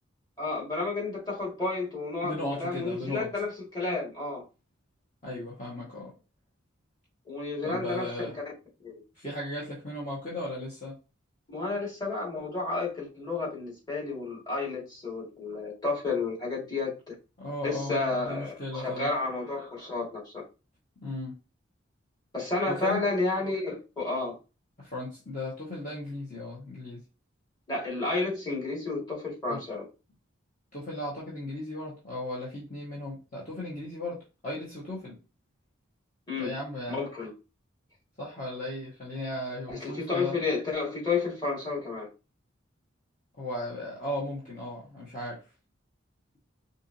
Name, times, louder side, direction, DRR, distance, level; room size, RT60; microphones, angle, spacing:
voice 1, 0.4-4.5 7.3-8.3 8.8-9.0 11.5-17.1 17.6-20.4 22.3-24.4 27.7-29.8 36.3-36.6 36.9-37.3 39.7-42.1, left 3 dB, 20° left, 2.0 m, -31 dB
voice 2, 2.2-3.3 5.2-6.1 7.6-8.3 9.1-10.9 17.4-19.1 21.0-21.3 22.7-23.0 24.8-27.0 29.5-29.6 30.7-35.2 36.4-37.0 38.2-40.3 43.4-45.4, left 1 dB, 40° left, 1.4 m, -36 dB
4.7 x 2.7 x 2.7 m
head